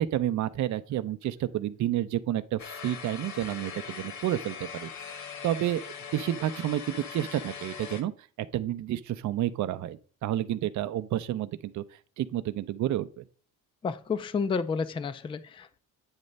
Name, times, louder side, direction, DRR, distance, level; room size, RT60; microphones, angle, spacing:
voice 1, 0.0-5.8 6.1-8.1 8.5-11.8 12.2-13.2, right 12 dB, 60° right, 0.5 m, -30 dB
sound 1, 2.6-8.0, left 7 dB, 55° left, 1.2 m, -41 dB
voice 2, 13.8-15.8, left 5 dB, 15° left, 0.3 m, -31 dB
8.9 x 3.2 x 5.2 m
cardioid pair, 165°, 33 cm